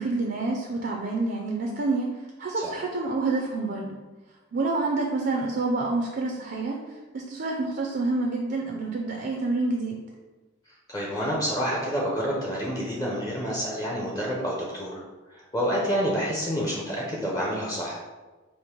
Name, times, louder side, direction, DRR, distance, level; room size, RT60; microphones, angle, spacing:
voice 1, 0.0-2.1 2.4-4.0 4.5-6.8 7.1-10.0, right 3 dB, 50° right, 0 dB, 0.5 m, -28 dB
voice 2, 10.9-15.0 15.3-18.0, equal, 20° left, -4 dB, 0.7 m, -28 dB
5.2 x 2.1 x 4.4 m, 1.2 s
head